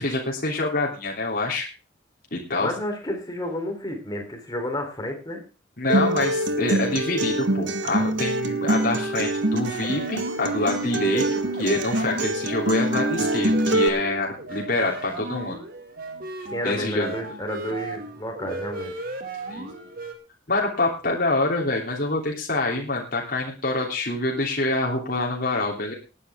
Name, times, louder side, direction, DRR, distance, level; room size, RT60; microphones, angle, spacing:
voice 1, 0.0-1.7 2.3-2.7 5.8-15.6 16.6-17.1 19.5-19.7 20.5-25.9, left 2 dB, 50° left, -2 dB, 3.3 m, -26 dB
voice 2, 2.6-5.4 16.5-18.9, left 1 dB, 20° left, 3 dB, 3.8 m, -31 dB
Acoustic guitar, 5.9-13.9, right 1 dB, 70° right, 1.5 m, -25 dB
sound 1, 9.6-20.1, right 2 dB, 50° right, 2.4 m, -36 dB
19.0 x 10.0 x 3.7 m, 0.31 s
head